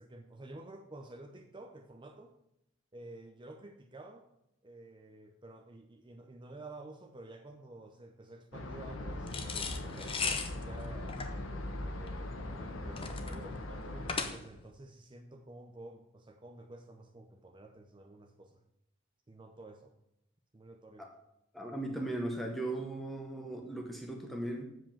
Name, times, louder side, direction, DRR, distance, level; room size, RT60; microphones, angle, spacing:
voice 1, 0.0-2.3 2.9-4.2 4.6-11.2 11.8-18.6 19.3-20.0 20.5-21.1, right 2 dB, 25° right, 5 dB, 0.6 m, -51 dB
sound 1, 8.5-14.2, left 1 dB, 75° left, 1.0 m, -40 dB
sound 2, 9.3-14.7, left 5 dB, 25° left, 0.7 m, -38 dB
voice 2, 21.5-24.7, right 1 dB, ahead, 1 dB, 1.0 m, -37 dB
7.6 x 5.0 x 7.3 m, 0.83 s
head